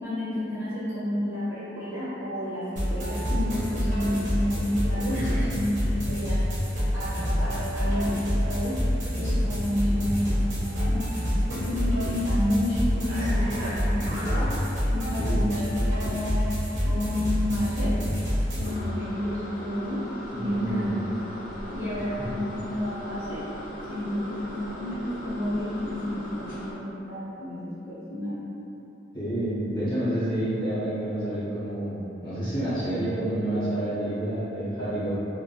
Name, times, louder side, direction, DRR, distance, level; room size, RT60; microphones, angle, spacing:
voice 1, 0.0-6.4 6.9-8.1 8.4-8.8 9.2-11.0 11.5-14.5 14.9-15.5 15.9-16.4 16.8-17.9 18.6-20.0 20.4-20.8 21.7-23.4 23.9-28.3, left 1 dB, 15° right, -16 dB, 1.1 m, -30 dB
sound 1, 2.8-18.8, equal, 40° right, 0.9 m, -27 dB
voice 2, 15.2-15.5 20.3-21.0 21.9-22.1 29.1-35.1, right 1 dB, 25° left, -14 dB, 1.3 m, -29 dB
sound 2, 18.6-26.7, equal, 45° left, 0.4 m, -39 dB
3.6 x 2.1 x 2.4 m, 3.0 s
head